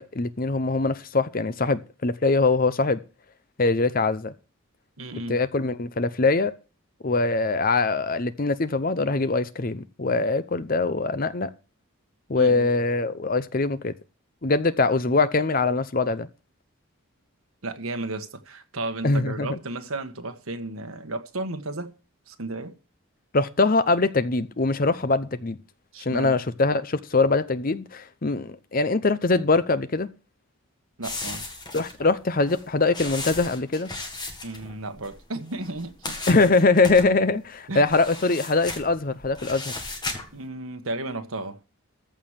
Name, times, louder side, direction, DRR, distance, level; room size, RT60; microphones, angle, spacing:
voice 1, 0.0-3.0 3.6-4.3 5.3-6.5 7.0-11.5 12.3-13.9 14.4-16.3 19.0-19.6 23.3-25.6 26.0-30.1 31.7-33.9 36.3-39.7, left 3 dB, 40° left, 0.7 m, -23 dB
voice 2, 5.0-5.4 12.3-12.7 17.6-21.9 22.3-22.7 25.9-26.4 31.0-31.4 34.4-36.2 37.7-37.9 40.3-41.6, right 2 dB, 75° right, 1.5 m, -33 dB
sound 1, 31.0-35.2 35.5-37.1 37.7-40.4, left 2 dB, 20° left, 1.8 m, -36 dB
14.5 x 4.8 x 7.4 m
head